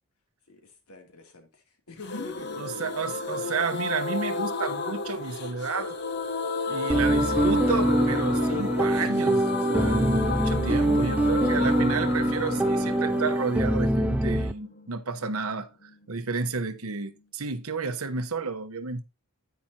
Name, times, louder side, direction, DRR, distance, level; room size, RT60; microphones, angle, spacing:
voice 1, 0.5-2.8 6.7-7.1 10.9-11.5, left 2 dB, 85° left, 2.8 m, -47 dB
sound 1, 2.0-15.6 15.9-16.0 16.2-16.3, left 4 dB, 50° left, 1.0 m, -32 dB
voice 2, 2.6-6.0 6.7-19.0, right 4 dB, 80° right, 1.0 m, -31 dB
sound 2, 6.9-14.5, right 1 dB, 5° right, 0.4 m, -24 dB
10.5 x 9.3 x 2.8 m
head